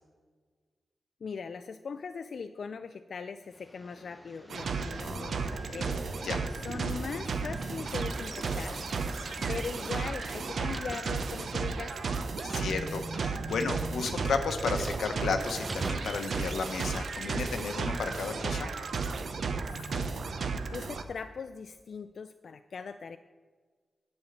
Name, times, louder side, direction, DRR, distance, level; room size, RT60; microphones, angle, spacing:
voice 1, 1.2-6.0 6.5-8.8 9.5-12.2 19.6-20.1 20.7-23.2, left 5 dB, 60° left, 10 dB, 0.3 m, -40 dB
sound 1, 3.4-11.5, equal, 5° left, 0.9 m, -49 dB
sound 2, 4.5-21.0, right 4 dB, 65° right, 0.7 m, -34 dB
sound 3, 10.0-19.2, right 2 dB, 20° right, 0.5 m, -45 dB
voice 2, 12.4-18.7, left 4 dB, 90° left, 7 dB, 1.0 m, -33 dB
9.8 x 5.4 x 8.1 m, 1.5 s
wide cardioid pair, 110°, 0 cm